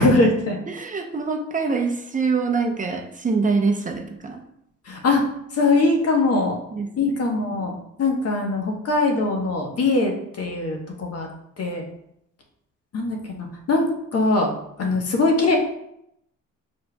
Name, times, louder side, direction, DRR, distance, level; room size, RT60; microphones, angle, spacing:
voice 1, 0.0-0.6 4.9-5.2 5.5-6.6 7.0-11.3 11.6-11.8 12.9-14.5 14.8-15.6, left 2 dB, 55° left, 2 dB, 1.0 m, -21 dB
voice 2, 0.7-4.4 6.7-7.2 7.4-7.5, right 4 dB, 25° right, 3 dB, 0.6 m, -25 dB
5.1 x 4.4 x 2.2 m, 0.77 s
cardioid pair, 90°, 30 cm